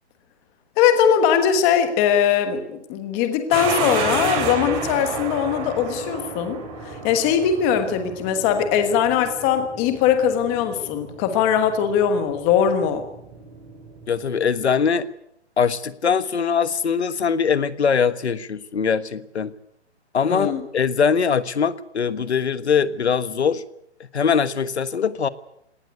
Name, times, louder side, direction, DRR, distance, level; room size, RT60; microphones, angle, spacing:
voice 1, 0.8-13.0 20.3-20.6, left 8 dB, 15° left, 9 dB, 1.3 m, -20 dB
sound 1, 3.5-14.3, right 4 dB, 15° right, 3.5 m, -31 dB
voice 2, 14.1-15.1 15.6-19.5 20.1-23.6 24.1-25.3, left 6 dB, 70° left, 15 dB, 1.4 m, -22 dB
19.0 x 18.5 x 9.5 m, 0.78 s
hypercardioid pair, 165°, 34 cm